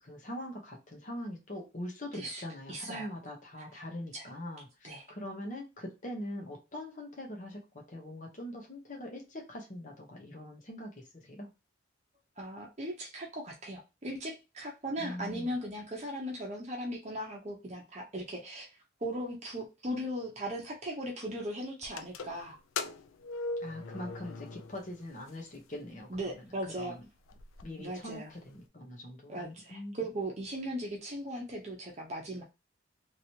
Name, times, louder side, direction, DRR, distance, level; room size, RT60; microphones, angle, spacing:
voice 1, 0.0-11.5 15.0-15.5 23.6-27.0 27.6-30.0, left 1 dB, 40° left, 0 dB, 0.9 m, -43 dB
voice 2, 2.7-3.1 4.1-4.3 4.8-5.0 12.4-18.7 19.0-22.6 26.1-27.0 27.8-28.3 29.3-32.4, equal, 35° right, -1 dB, 0.8 m, -38 dB
sound 1, 21.8-25.0 25.3-25.4 26.2-26.3 26.7-26.8 27.0-27.6, left 3 dB, 90° left, 0.4 m, -39 dB
3.0 x 2.9 x 2.8 m, 0.26 s
head